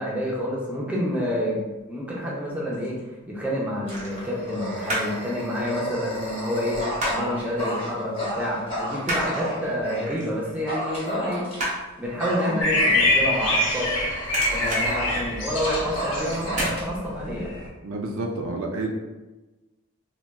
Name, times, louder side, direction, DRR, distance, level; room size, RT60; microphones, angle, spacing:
voice 1, 0.0-1.6 1.9-2.9 3.3-6.8 7.1-11.4 12.0-13.9 14.5-17.5, equal, 5° right, -5 dB, 0.5 m, -28 dB
sound 1, 2.4-3.0 3.9-5.2 5.5-7.4 7.7-7.9 8.3-13.9 14.2-15.9 16.5-16.8 17.2-17.3, right 1 dB, 35° right, 0.7 m, -32 dB
Dog, 3.9-10.1 10.7-11.8 12.2-15.3 15.6-16.8, equal, 25° left, 0.8 m, -32 dB
sound 2, 12.6-17.7, left 2 dB, 65° left, 0.6 m, -25 dB
voice 2, 17.8-18.9, right 2 dB, 70° right, 1 dB, 0.4 m, -29 dB
3.9 x 2.2 x 2.2 m, 1.1 s
head